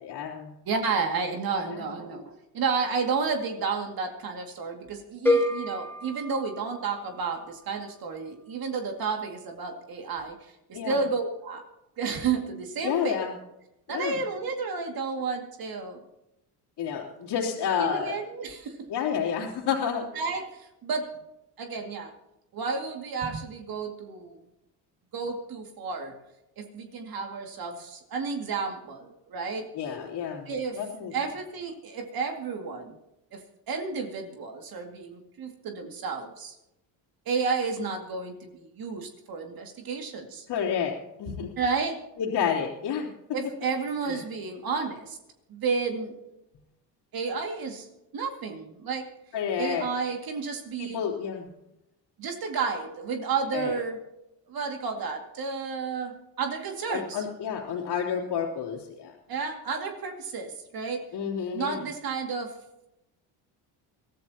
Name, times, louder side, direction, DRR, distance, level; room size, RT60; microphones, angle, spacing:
voice 1, 0.0-0.5 1.7-1.9 10.7-11.0 12.8-13.3 13.9-14.2 16.8-18.2 18.9-20.1 29.7-31.1 40.5-41.5 42.2-43.1 44.0-44.2 49.3-49.8 50.8-51.5 53.5-53.7 56.9-59.1 61.1-61.8, left 7 dB, 70° left, -6 dB, 3.3 m, -30 dB
voice 2, 0.7-11.6 12.0-13.2 13.9-16.0 17.8-18.9 20.1-21.2 21.6-22.1 22.5-24.4 25.1-26.2 26.6-29.7 30.5-30.8 31.1-33.0 33.3-33.4 33.7-36.6 37.3-40.4 41.6-42.0 43.3-45.2 45.5-46.1 47.1-47.9 48.1-49.1 49.6-51.0 52.2-54.0 54.5-57.2 59.3-61.1 61.5-62.5, right 5 dB, 55° right, 3 dB, 2.3 m, -31 dB
sound 1, 5.3-7.3, left 1 dB, 5° left, 1.8 m, -28 dB
23.0 x 14.0 x 2.9 m, 0.89 s
cardioid pair, 105°, 43 cm